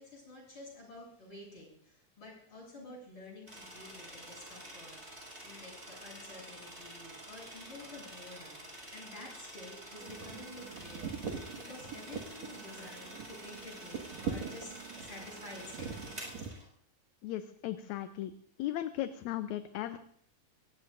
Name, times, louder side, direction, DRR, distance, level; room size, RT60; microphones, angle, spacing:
voice 1, 0.0-16.5, left 2 dB, 40° left, -3 dB, 8.9 m, -50 dB
sound 1, 3.5-16.7, right 1 dB, 20° right, 7.1 m, -49 dB
sound 2, 10.0-16.5, right 6 dB, 65° right, 3.0 m, -43 dB
voice 2, 17.2-18.3 18.6-20.0, left 13 dB, 75° left, 9 dB, 2.0 m, -36 dB
23.5 x 18.5 x 2.6 m, 0.64 s
omnidirectional pair, 3.5 m